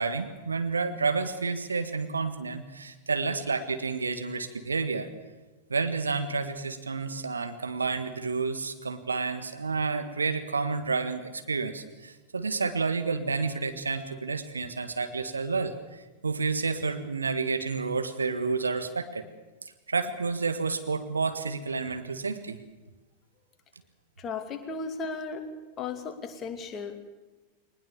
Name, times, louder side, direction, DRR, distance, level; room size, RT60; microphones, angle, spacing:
voice 1, 0.0-5.1 5.7-19.2 19.9-22.6, right 4 dB, 75° right, 9 dB, 1.6 m, -30 dB
voice 2, 24.2-25.5 25.8-27.0, left 4 dB, 25° left, 6 dB, 2.6 m, -35 dB
22.0 x 20.0 x 7.1 m, 1.2 s
figure-of-eight pair, 90°, 0 cm